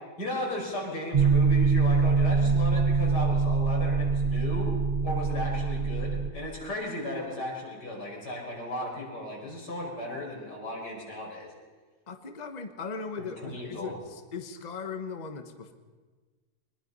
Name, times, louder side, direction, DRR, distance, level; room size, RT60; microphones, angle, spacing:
voice 1, 0.2-4.7 5.0-11.5 13.2-14.0, left 1 dB, 85° left, -2 dB, 5.8 m, -35 dB
sound 1, 1.1-6.3, right 4 dB, 50° right, 0.5 m, -24 dB
voice 2, 12.1-15.7, left 5 dB, 30° left, 7 dB, 1.2 m, -38 dB
23.0 x 20.5 x 5.5 m, 1.4 s
omnidirectional pair, 1.8 m